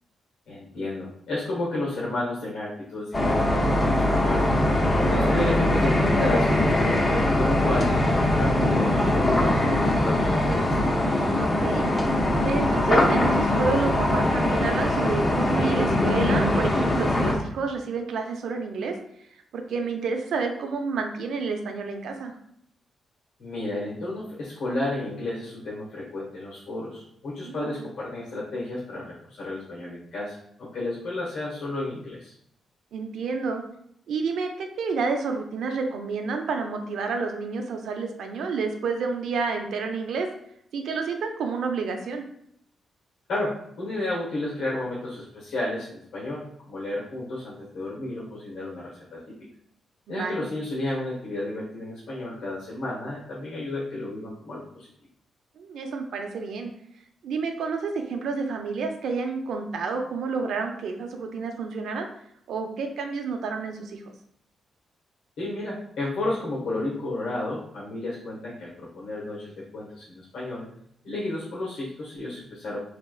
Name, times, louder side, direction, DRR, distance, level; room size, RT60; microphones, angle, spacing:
voice 1, 0.5-4.4 5.1-10.8 23.4-32.3 43.3-49.2 50.1-54.9 65.4-70.7 71.0-72.8, left 2 dB, 85° left, -6 dB, 1.3 m, -32 dB
sound 1, 3.1-17.4, left 1 dB, 20° left, 0.6 m, -22 dB
voice 2, 11.2-11.9 12.4-18.9 19.5-22.3 27.4-27.9 32.9-33.6 34.1-40.3 40.7-42.2 50.1-50.5 55.6-56.7 57.2-62.1 62.5-64.0, right 4 dB, 75° right, 4 dB, 0.6 m, -29 dB
4.3 x 3.4 x 2.3 m, 0.71 s
wide cardioid pair, 150°, 0 cm